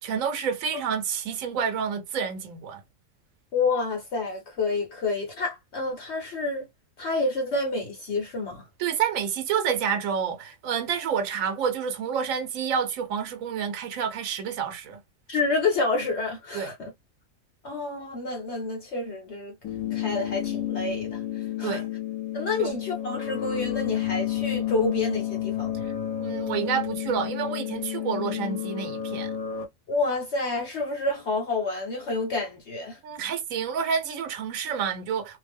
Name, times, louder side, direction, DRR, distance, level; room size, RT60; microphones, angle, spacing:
voice 1, 0.0-2.8 8.8-15.0 16.5-16.7 21.6-21.8 22.6-22.7 26.2-29.3 33.0-35.4, right 7 dB, 75° right, 1.1 m, -29 dB
voice 2, 3.5-6.7 7.0-8.6 15.3-16.9 17.6-19.5 19.9-21.2 21.6-21.8 22.3-25.8 29.9-33.0, left 3 dB, 60° left, 1.0 m, -28 dB
sound 1, 19.6-29.6, left 11 dB, 90° left, 1.1 m, -31 dB
2.7 x 2.1 x 3.4 m
omnidirectional pair, 1.4 m